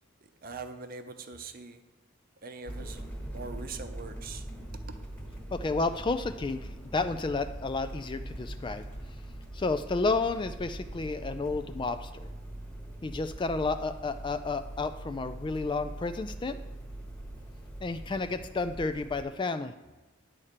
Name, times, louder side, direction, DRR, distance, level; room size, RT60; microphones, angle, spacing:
voice 1, 0.4-1.8 2.4-4.5 5.2-5.3, right 4 dB, 45° right, 8 dB, 0.7 m, -42 dB
sound 1, 2.7-19.2, right 1 dB, 5° left, 1.2 m, -42 dB
voice 2, 5.5-8.8 9.5-12.3 13.0-16.6 17.8-19.7, left 3 dB, 25° left, 9 dB, 0.3 m, -31 dB
10.0 x 4.2 x 6.6 m, 1.2 s
head